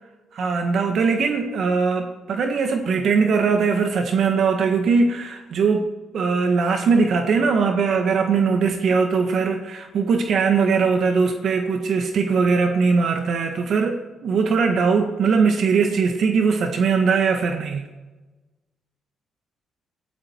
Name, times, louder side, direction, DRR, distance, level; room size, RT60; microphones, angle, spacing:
voice 1, 0.3-17.9, right 5 dB, 65° right, 5 dB, 1.5 m, -20 dB
20.0 x 13.5 x 4.6 m, 1.2 s
cardioid pair, 90°, 0 cm